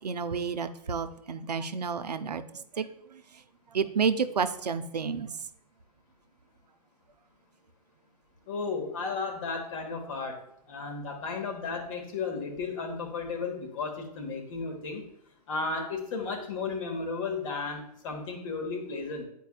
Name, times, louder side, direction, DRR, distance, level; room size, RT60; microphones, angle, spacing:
voice 1, 0.0-3.2 3.7-5.4, right 6 dB, 80° right, 11 dB, 0.5 m, -30 dB
voice 2, 8.5-15.1 15.5-19.2, left 4 dB, 50° left, 3 dB, 1.4 m, -34 dB
9.2 x 4.5 x 2.3 m, 0.71 s
figure-of-eight pair, 110°, 21 cm